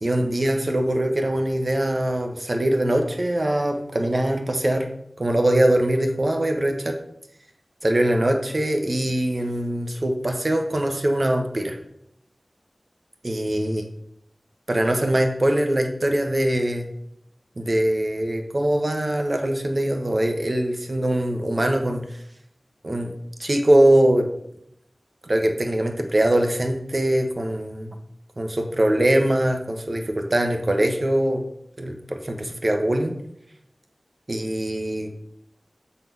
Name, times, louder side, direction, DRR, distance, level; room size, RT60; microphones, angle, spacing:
voice 1, 0.0-4.9 5.2-7.0 7.8-11.8 13.2-13.8 14.7-16.9 17.6-22.2 22.8-23.1 23.4-24.3 25.2-27.9 28.4-31.4 31.8-33.1 34.3-35.1, right 1 dB, 45° right, 4 dB, 1.1 m, -22 dB
7.5 x 4.3 x 5.4 m, 0.74 s
wide cardioid pair, 65°, 0 cm